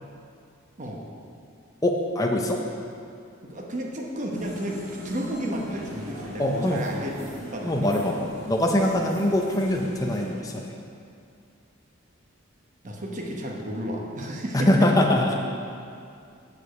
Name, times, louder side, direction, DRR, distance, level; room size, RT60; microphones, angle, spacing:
voice 1, 1.8-2.6 6.4-6.8 7.6-10.7 14.5-15.5, left 1 dB, 15° left, 0 dB, 0.5 m, -23 dB
voice 2, 3.4-8.1 12.8-14.9, equal, 40° right, -1 dB, 0.9 m, -32 dB
sound 1, 4.3-10.3, equal, 90° right, 1.9 m, -42 dB
6.9 x 4.9 x 6.6 m, 2.4 s
head